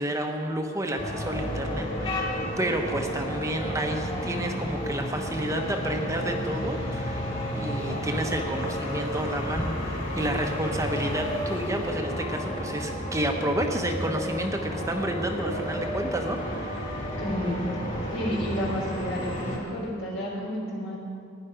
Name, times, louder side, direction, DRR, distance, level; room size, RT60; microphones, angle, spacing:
voice 1, 0.0-7.2 7.5-16.7, right 1 dB, 15° right, 3 dB, 0.9 m, -30 dB
sound 1, 1.0-19.6, equal, 30° left, 3.4 m, -32 dB
voice 2, 17.2-17.6 18.1-21.0, equal, 75° left, -3 dB, 3.8 m, -31 dB
16.0 x 10.0 x 5.1 m, 2.4 s
head